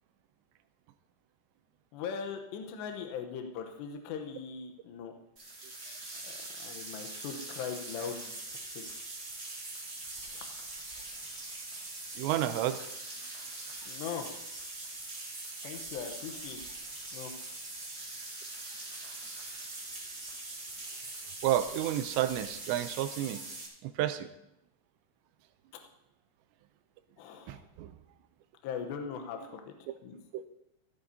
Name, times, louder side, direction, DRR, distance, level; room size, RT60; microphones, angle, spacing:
voice 1, 1.9-5.1 6.2-8.4 8.8-8.9 13.9-14.3 15.6-16.6 17.1-17.3 27.2-27.6 28.6-29.6 30.0-30.2, left 7 dB, 75° left, 4 dB, 3.0 m, -40 dB
sound 1, 5.3-23.6, right 2 dB, 55° right, 0.7 m, -42 dB
voice 2, 12.2-12.8 15.6-15.8 21.4-23.4 23.8-24.3 27.5-27.9 29.9-30.0 30.3-30.5, right 12 dB, 80° right, 11 dB, 2.7 m, -31 dB
16.0 x 13.0 x 2.8 m, 0.83 s
omnidirectional pair, 5.2 m